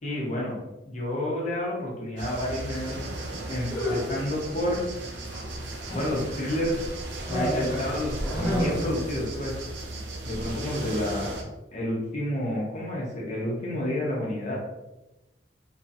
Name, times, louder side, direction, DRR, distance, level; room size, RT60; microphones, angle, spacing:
voice 1, 0.0-0.6 0.9-3.0 3.5-4.8 5.9-6.7 7.3-9.5 10.2-11.4 11.7-14.6, left 1 dB, 40° left, -3 dB, 0.9 m, -30 dB
sound 1, 2.2-11.4, right 2 dB, 75° right, 0.6 m, -36 dB
sound 2, 3.6-4.2 5.3-6.3 7.3-9.1, equal, 15° left, 1.2 m, -29 dB
2.8 x 2.8 x 2.5 m, 1.0 s
head